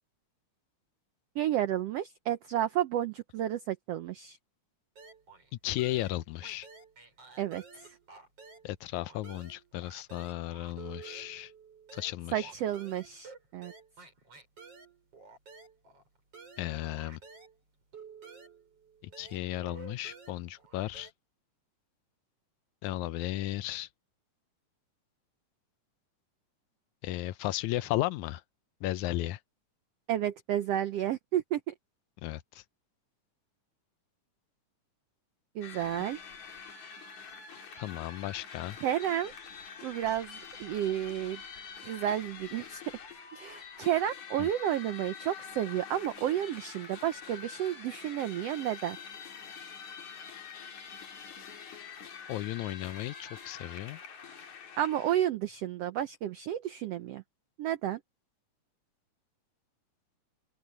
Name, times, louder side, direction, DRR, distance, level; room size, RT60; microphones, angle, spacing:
voice 1, 1.3-4.4 7.4-7.9 12.3-13.7 30.1-31.7 35.5-36.2 38.8-39.3 39.8-41.4 41.8-42.8 43.3-49.0 54.8-57.2 57.6-58.0, right 11 dB, 90° right, 1.4 m, -31 dB
sound 1, 5.0-5.5 5.8-8.7 9.0-17.6 17.9-21.1, right 5 dB, 45° right, 8.1 m, -52 dB
voice 2, 5.6-6.7 8.6-11.5 11.9-12.5 16.6-17.2 19.2-21.1 22.8-23.9 27.0-28.4 28.8-29.4 32.2-32.6 37.8-38.8 44.4-44.5 52.3-54.0, left 15 dB, 75° left, 1.9 m, -35 dB
Castellers Pl Ajuntament, 35.6-55.2, left 6 dB, 60° left, 4.0 m, -46 dB
open air
omnidirectional pair, 3.8 m